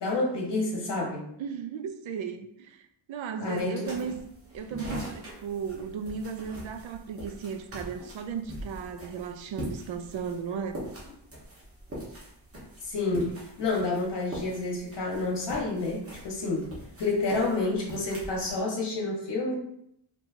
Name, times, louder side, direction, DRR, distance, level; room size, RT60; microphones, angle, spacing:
voice 1, 0.0-1.2 3.4-4.0 10.5-10.6 12.8-16.7 17.0-19.5, left 3 dB, 65° left, -1 dB, 1.2 m, -29 dB
voice 2, 1.4-4.1 4.5-10.8, right 6 dB, 80° right, 8 dB, 0.5 m, -36 dB
sound 1, 3.8-18.6, equal, 30° right, 1.2 m, -42 dB
4.3 x 3.0 x 2.7 m, 0.74 s
wide cardioid pair, 170°, 46 cm